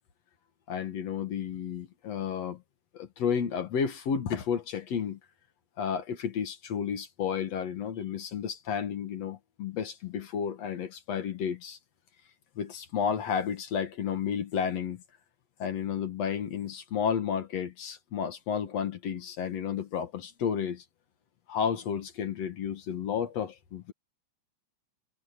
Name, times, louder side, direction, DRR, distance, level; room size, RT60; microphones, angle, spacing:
voice 1, 0.7-2.6 2.9-5.2 5.8-11.8 12.6-15.0 15.6-20.8 21.5-23.9, left 7 dB, 60° left, 2.7 m, -32 dB
omnidirectional pair, 3.4 m